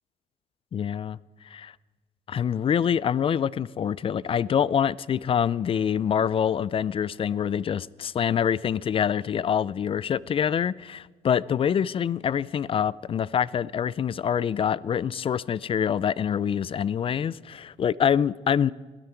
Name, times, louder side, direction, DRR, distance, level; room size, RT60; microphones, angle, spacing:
voice 1, 0.7-1.2 1.5-1.7 2.3-18.7, left 8 dB, 35° left, 0.4 m, -25 dB
21.5 x 13.0 x 4.6 m
cardioid pair, 110°, 17 cm